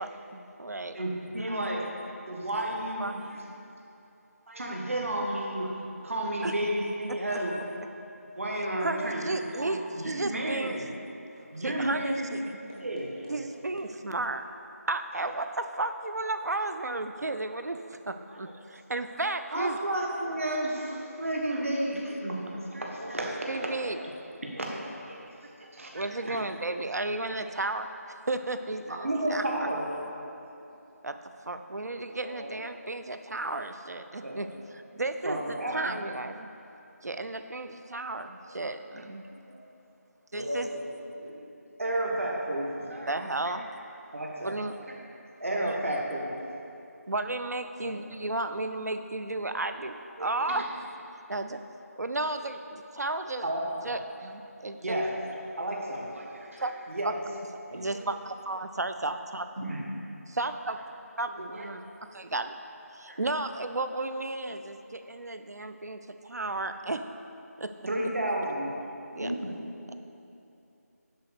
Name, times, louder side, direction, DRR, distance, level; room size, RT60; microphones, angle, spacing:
voice 1, 0.0-1.0 1.4-1.7 3.0-3.2 6.4-6.5 7.1-7.4 8.8-10.8 11.6-12.4 13.3-14.4 14.9-19.8 23.5-24.0 25.9-27.9 28.3-29.7 31.0-31.2 31.5-36.5 37.0-39.3 40.3-40.7 43.1-43.7 44.4-44.8 45.6-45.8 47.1-50.7 51.3-51.6 52.0-53.5 53.8-55.0 56.6-56.7 57.0-57.1 57.7-59.5 60.3-60.8 61.2-61.8 62.1-62.5 62.9-67.0 67.6-67.7 69.1-69.3, right 2 dB, 80° right, 8 dB, 0.6 m, -33 dB
voice 2, 0.9-1.9 2.3-3.4 4.5-5.8 6.0-7.6 8.2-10.8 11.5-12.3 12.8-13.4 18.3-18.4 19.0-19.1 19.5-22.4 22.7-24.0 24.4-24.7 25.1-25.3 25.6-26.4 29.0-29.8 34.2-34.4 35.2-35.9 41.8-43.1 44.1-44.5 44.9-45.0 45.4-46.3 50.2-50.6 53.4-53.9 54.8-55.1 55.6-57.1 59.6-59.8 61.5-61.6 63.1-63.2 67.9-68.7, right 1 dB, 55° right, -1 dB, 1.6 m, -32 dB
voice 3, 31.7-32.6 38.5-38.6 39.3-39.6 40.3-41.4 47.8-48.0 57.7-57.9 61.3-61.7 69.2-69.6, equal, 15° right, -6 dB, 0.3 m, -38 dB
10.5 x 4.1 x 6.7 m, 2.8 s
figure-of-eight pair, 175°, 9 cm